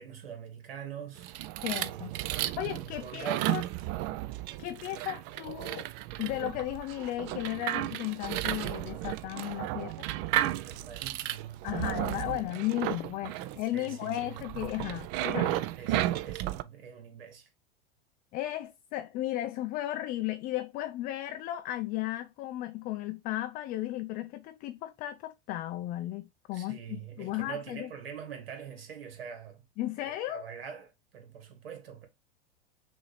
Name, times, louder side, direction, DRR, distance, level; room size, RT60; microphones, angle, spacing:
voice 1, 0.0-1.4 1.8-2.5 2.8-3.5 10.6-11.6 12.1-12.5 13.3-14.4 15.7-17.5 26.5-29.6 30.0-32.1, right 7 dB, 70° right, 1.6 m, -44 dB
sound 1, 1.2-16.6, right 14 dB, 40° right, 0.4 m, -34 dB
voice 2, 1.6-2.1 2.6-3.6 4.6-5.9 6.2-9.9 11.6-15.6 18.3-27.9 29.8-30.4, left 15 dB, 30° left, 0.4 m, -35 dB
6.2 x 2.7 x 3.1 m
hypercardioid pair, 95°, 30 cm